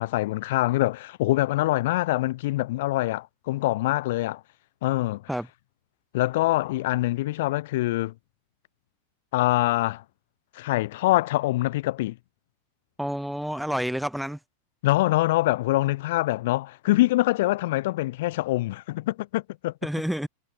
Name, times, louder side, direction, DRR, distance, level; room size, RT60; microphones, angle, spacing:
voice 1, 0.0-4.4 4.8-5.2 6.1-8.1 9.3-10.0 10.6-12.2 14.8-19.7, left 17 dB, 55° left, 7.1 m, -24 dB
voice 2, 13.0-14.4 19.8-20.3, equal, ahead, 4.9 m, -29 dB
figure-of-eight pair, 90°, 0 cm